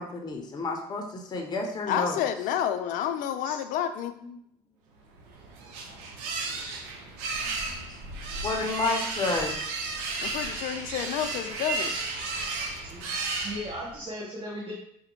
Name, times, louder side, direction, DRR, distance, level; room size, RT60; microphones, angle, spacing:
voice 1, 0.0-2.2 7.4-7.8 8.4-9.6, left 3 dB, 30° left, 2 dB, 0.7 m, -30 dB
voice 2, 1.9-4.1 10.2-11.9, left 10 dB, 65° left, 9 dB, 0.4 m, -29 dB
sound 1, 5.1-14.0, right 3 dB, 80° right, 0.7 m, -33 dB
voice 3, 13.4-14.7, equal, 35° right, -5 dB, 1.0 m, -36 dB
4.8 x 2.1 x 3.0 m, 0.71 s
supercardioid pair, 80°, 15 cm